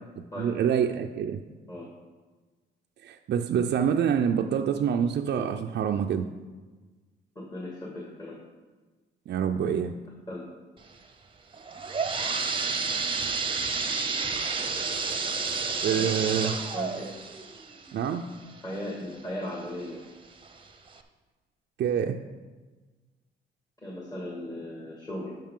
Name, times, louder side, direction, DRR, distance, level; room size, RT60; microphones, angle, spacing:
voice 1, 0.2-1.4 3.0-6.3 9.3-9.9 14.7-14.8 15.8-16.6 17.9-18.3 21.8-22.2, right 8 dB, 60° right, 3 dB, 0.5 m, -26 dB
voice 2, 7.4-8.4 10.3-10.5 16.0-17.1 18.6-20.0 23.8-25.4, left 1 dB, 20° left, -3 dB, 1.8 m, -37 dB
sound 1, 11.5-19.1 19.6-19.7 20.5-20.6 21.0-21.1, right 4 dB, 25° right, 0.8 m, -30 dB
12.0 x 5.4 x 3.7 m, 1.3 s
cardioid pair, 90°, 20 cm